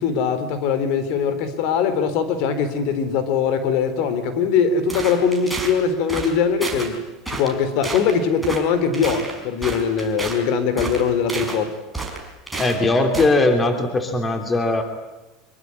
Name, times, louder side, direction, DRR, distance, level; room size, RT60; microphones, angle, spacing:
voice 1, 0.0-7.0 7.3-11.7, left 6 dB, 55° left, 11 dB, 3.7 m, -21 dB
sound 1, 4.9-5.7 6.1-6.3 6.6-6.9 7.2-7.6 7.8-8.1 8.4-8.6 8.9-10.4 10.8-11.6 11.9-12.8 13.1-13.3, right 3 dB, 5° right, 5.0 m, -30 dB
voice 2, 12.6-14.8, left 2 dB, 15° left, 6 dB, 3.1 m, -19 dB
25.5 x 22.5 x 9.8 m, 1.1 s
supercardioid pair, 155°, 0 cm